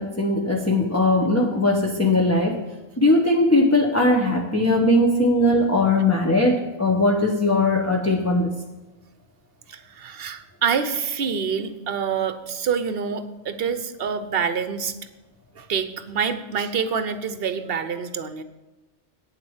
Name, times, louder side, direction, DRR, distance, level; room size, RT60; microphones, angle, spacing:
voice 1, 0.0-2.6 3.0-8.5, left 2 dB, 15° left, 0 dB, 0.9 m, -19 dB
voice 2, 9.7-14.9 15.5-18.4, right 6 dB, 55° right, 11 dB, 1.0 m, -26 dB
9.1 x 7.7 x 7.2 m, 1.1 s
omnidirectional pair, 1.3 m